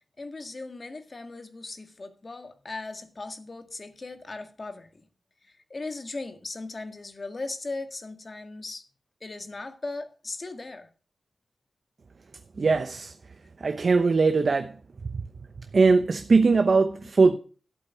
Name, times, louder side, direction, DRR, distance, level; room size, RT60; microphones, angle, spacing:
voice 1, 0.2-5.0 5.7-8.8 9.2-10.9, left 3 dB, 35° left, 1.8 m, -38 dB
voice 2, 12.6-13.1 13.6-14.8 15.0-15.2 15.6-17.4, right 4 dB, 50° right, 0.8 m, -21 dB
12.5 x 8.3 x 5.9 m
wide cardioid pair, 105°, 0 cm